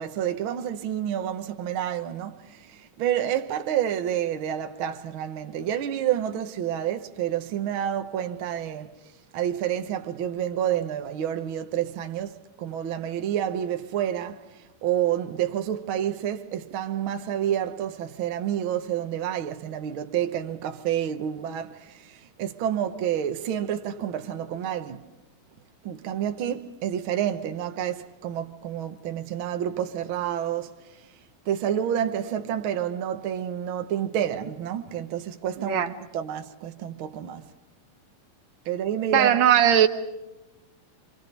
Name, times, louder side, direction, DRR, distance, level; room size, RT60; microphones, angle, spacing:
voice 1, 0.0-2.4 2.7-8.9 9.3-12.3 12.6-14.4 14.8-22.1 22.4-25.0 25.8-30.7 31.5-35.8 36.1-37.4 38.7-39.4, right 10 dB, 75° right, 1.1 m, -29 dB
voice 2, 35.6-35.9 39.1-39.9, right 9 dB, 60° right, 2.3 m, -19 dB
28.0 x 25.0 x 5.3 m
omnidirectional pair, 4.0 m